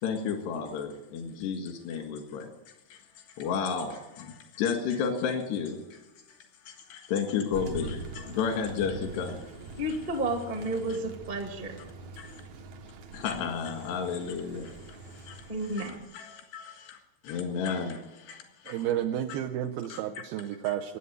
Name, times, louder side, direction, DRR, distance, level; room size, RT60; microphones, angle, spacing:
voice 1, 0.0-2.5 2.9-3.0 3.4-6.0 6.7-9.5 12.2-12.4 13.1-14.8 15.1-15.5 15.8-17.0 17.2-18.9 19.3-19.4 19.9-20.0 20.7-20.8, left 6 dB, 90° left, 4 dB, 3.9 m, -32 dB
Thunder, 7.5-16.0, right 3 dB, 60° right, 2.1 m, -44 dB
voice 2, 9.8-11.8 15.5-16.0, right 1 dB, 25° right, 3 dB, 0.9 m, -31 dB
voice 3, 18.7-21.0, right 11 dB, 75° right, 2 dB, 2.4 m, -31 dB
21.0 x 8.3 x 8.0 m, 1.0 s
omnidirectional pair, 4.7 m